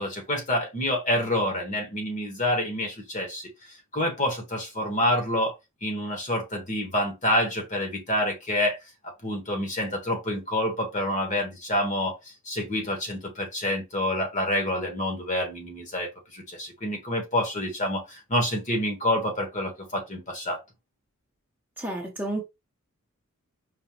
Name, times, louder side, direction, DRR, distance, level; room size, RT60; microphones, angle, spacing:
voice 1, 0.0-3.5 3.9-5.5 5.8-8.8 9.0-12.2 12.4-20.6, left 1 dB, 35° left, 1.1 m, -27 dB
voice 2, 21.8-22.4, right 1 dB, 10° right, 0.7 m, -31 dB
5.0 x 2.2 x 2.8 m
head